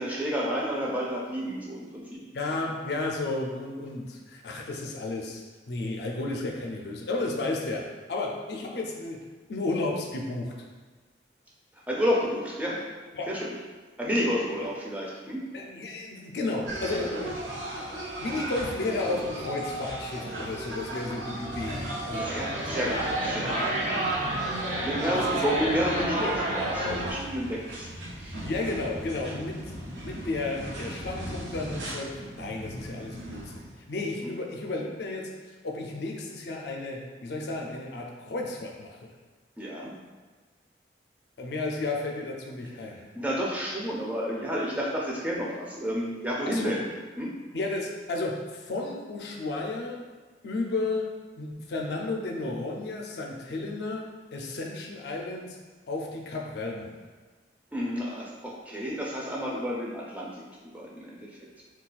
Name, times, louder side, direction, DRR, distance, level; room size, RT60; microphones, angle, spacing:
voice 1, 0.0-2.2 11.9-12.8 13.3-13.5 14.0-15.4 22.2-24.4 24.7-27.9 28.2-28.4 34.2-34.3 39.6-39.9 43.1-46.8 47.2-47.3 57.7-60.3 60.7-61.2, equal, 10° right, -4 dB, 0.4 m, -30 dB
voice 2, 2.3-10.6 13.1-13.4 14.6-14.7 15.5-17.4 18.2-22.8 25.1-25.4 28.4-29.7 30.0-35.3 35.6-39.1 41.4-43.1 46.5-46.8 47.5-50.1 50.4-55.6 55.9-57.0, left 2 dB, 65° left, 0 dB, 0.4 m, -33 dB
sound 1, 16.7-33.8, right 1 dB, 85° right, 0.7 m, -37 dB
sound 2, 22.1-27.1, right 1 dB, 45° right, 0.7 m, -30 dB
2.3 x 2.3 x 3.9 m, 1.4 s
head